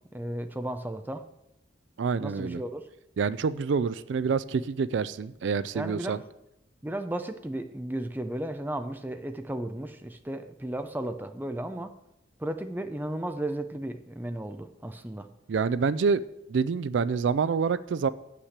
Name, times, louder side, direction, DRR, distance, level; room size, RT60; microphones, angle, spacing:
voice 1, 0.1-1.3 2.2-2.8 5.7-6.2 6.8-11.9 12.4-15.3, right 1 dB, 10° right, 8 dB, 0.5 m, -34 dB
voice 2, 2.0-2.6 3.2-6.2 15.5-16.2 16.5-18.1, right 5 dB, 75° right, 17 dB, 0.4 m, -27 dB
8.1 x 5.8 x 7.3 m, 0.87 s
head